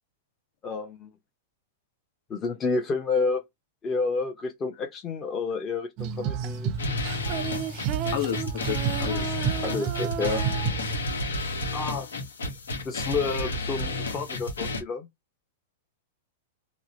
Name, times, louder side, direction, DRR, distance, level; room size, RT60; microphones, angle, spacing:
voice 1, 0.6-1.1 2.3-3.4 3.8-6.7 9.6-10.5 11.7-12.1 12.8-15.1, left 4 dB, 25° left, 0.7 m, -29 dB
Female singing, 6.0-11.4, right 7 dB, 45° right, 0.4 m, -31 dB
sound 1, 6.8-14.8, left 2 dB, 90° left, 0.9 m, -31 dB
voice 2, 7.6-9.3, left 11 dB, 65° left, 1.0 m, -33 dB
2.8 x 2.0 x 2.7 m
hypercardioid pair, 120°, 0 cm